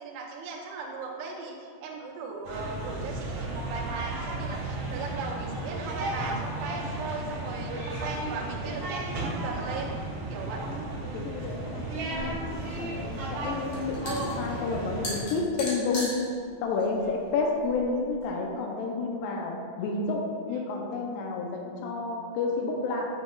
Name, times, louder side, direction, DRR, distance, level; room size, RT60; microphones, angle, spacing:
voice 1, 0.0-9.9 10.3-10.7 13.4-13.5 17.0-17.2 20.5-20.6, right 4 dB, 80° right, -3 dB, 2.5 m, -38 dB
sound 1, 2.4-15.2, right 2 dB, 55° right, 2.2 m, -34 dB
voice 2, 11.1-12.4 12.8-16.1 16.6-20.2 20.5-23.1, left 3 dB, 90° left, 0 dB, 2.4 m, -30 dB
sound 2, 12.1-18.3, left 1 dB, 75° left, 1.5 m, -40 dB
7.8 x 6.4 x 2.3 m, 2.2 s
omnidirectional pair, 5.4 m